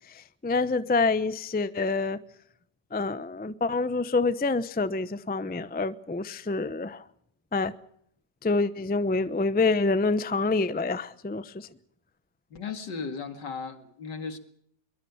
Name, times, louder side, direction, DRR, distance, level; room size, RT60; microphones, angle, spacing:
voice 1, 0.1-2.2 2.9-7.0 7.5-7.7 8.4-11.7, left 3 dB, 15° left, 0.4 m, -27 dB
voice 2, 12.5-14.4, left 5 dB, 85° left, 2.7 m, -36 dB
23.0 x 21.5 x 7.1 m
omnidirectional pair, 1.8 m